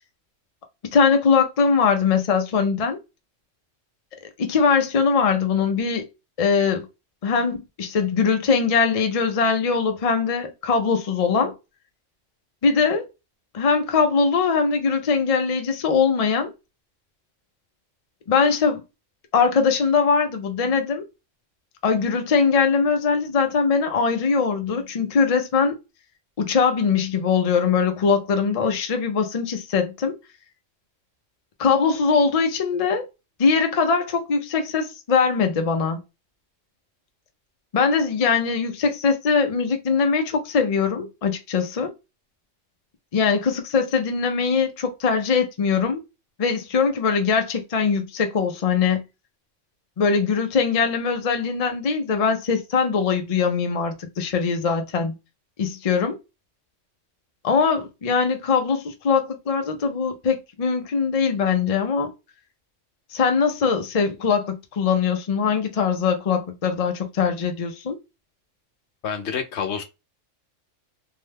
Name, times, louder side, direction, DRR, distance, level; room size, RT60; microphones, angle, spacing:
voice 1, 0.9-3.0 4.4-6.0 6.4-6.9 7.2-11.5 12.6-13.1 13.5-16.5 18.3-18.8 19.3-21.0 21.8-25.8 26.4-30.1 31.6-33.1 33.4-36.0 37.7-41.9 43.1-46.0 46.4-49.0 50.0-55.1 55.6-56.2 57.4-62.1 63.1-68.0, left 5 dB, 50° left, 0.4 m, -21 dB
voice 2, 69.0-69.8, left 7 dB, 65° left, 0.9 m, -28 dB
2.8 x 2.2 x 3.3 m
omnidirectional pair, 1.3 m